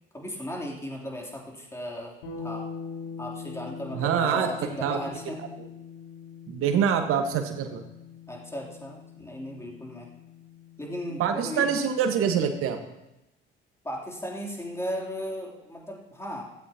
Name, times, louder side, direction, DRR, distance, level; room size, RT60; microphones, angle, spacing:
voice 1, 0.1-2.7 3.2-5.4 8.3-10.1 10.8-11.7 13.8-16.4, equal, 10° left, -2 dB, 3.3 m, -36 dB
sound 1, 2.2-12.0, left 5 dB, 70° left, 4.9 m, -43 dB
voice 2, 3.9-4.5 4.8-5.0 6.5-7.8 11.2-12.8, right 7 dB, 50° right, 6 dB, 1.6 m, -25 dB
15.5 x 13.5 x 3.0 m, 0.93 s
figure-of-eight pair, 60°, 29 cm